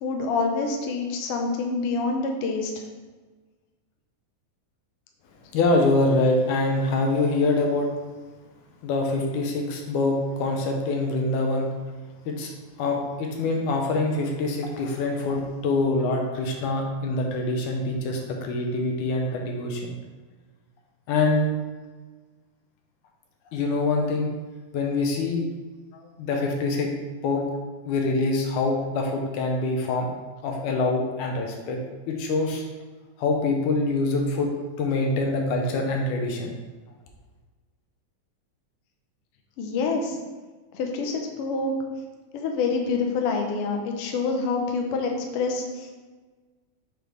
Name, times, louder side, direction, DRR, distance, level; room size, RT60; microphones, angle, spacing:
voice 1, 0.0-2.7 25.9-26.1 39.6-40.2 40.7-41.7 42.3-45.9, left 4 dB, 70° left, 2 dB, 1.4 m, -27 dB
voice 2, 5.5-7.9 8.8-11.7 12.3-12.5 12.8-20.0 21.1-21.5 23.5-24.3 24.7-25.4 26.2-26.9 27.2-27.5 27.9-30.1 30.4-31.8 32.1-32.6 33.2-34.5 34.8-36.5, left 2 dB, 85° left, 1 dB, 2.3 m, -25 dB
6.0 x 5.2 x 3.2 m, 1.3 s
omnidirectional pair, 3.5 m